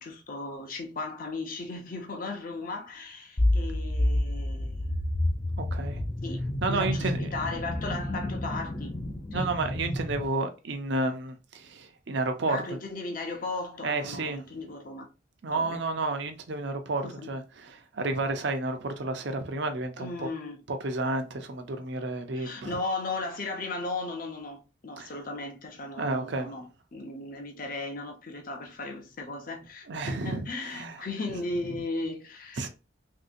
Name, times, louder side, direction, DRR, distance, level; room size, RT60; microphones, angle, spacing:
voice 1, 0.0-4.9 6.2-6.4 6.7-8.9 9.3-9.5 12.5-15.1 15.5-15.8 17.0-17.3 20.0-20.6 22.4-32.7, left 2 dB, 45° left, 0.7 m, -36 dB
sound 1, 3.4-10.3, left 1 dB, 20° left, 0.3 m, -29 dB
voice 2, 5.6-6.0 6.6-7.3 9.3-12.8 13.8-14.4 15.4-20.3 20.7-22.8 25.0-25.1 26.0-26.5 29.9-31.0 32.6-32.7, right 2 dB, 60° right, 0.5 m, -31 dB
3.2 x 2.7 x 2.6 m
head